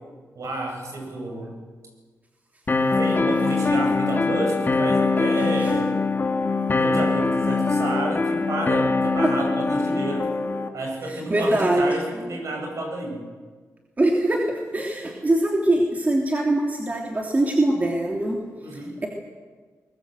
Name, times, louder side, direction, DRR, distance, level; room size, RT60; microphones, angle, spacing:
voice 1, 0.3-1.6 2.9-6.3 6.7-10.4 10.7-13.2 18.6-19.0, right 2 dB, 60° right, 1 dB, 7.8 m, -30 dB
sound 1, 2.7-10.7, left 3 dB, 35° left, 1.9 m, -22 dB
voice 2, 11.0-11.9 12.1-12.4 14.0-18.4 18.7-19.1, right 1 dB, 25° right, -1 dB, 3.2 m, -23 dB
22.5 x 20.5 x 7.9 m, 1.5 s
cardioid pair, 100°, 6 cm